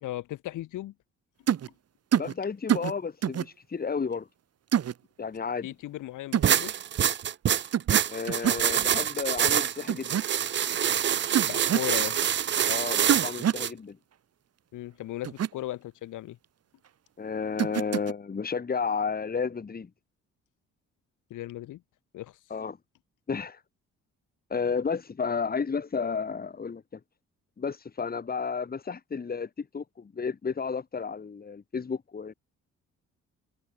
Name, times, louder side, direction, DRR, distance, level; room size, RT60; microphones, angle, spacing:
voice 1, 0.0-0.9 5.6-6.7 11.5-12.2 14.7-16.4 21.3-21.8 22.1-22.4, left 15 dB, 85° left, 2.8 m, -36 dB
sound 1, 1.5-1.7 2.1-2.3 2.7-2.9 3.2-3.5 4.7-4.9 6.3-6.5 7.7-8.0 8.3-8.6 9.9-10.2 11.3-11.9 13.1-13.6 15.2-15.5 17.6-18.1, right 9 dB, 55° right, 1.6 m, -26 dB
voice 2, 2.2-4.3 5.2-5.7 8.1-10.2 12.6-14.0 17.2-19.9 22.5-22.8 23.3-23.6 24.5-27.0 27.6-32.3, left 5 dB, 30° left, 2.0 m, -32 dB
sound 2, 6.4-13.7, right 9 dB, 40° right, 0.5 m, -26 dB
cardioid pair, 90°, 30 cm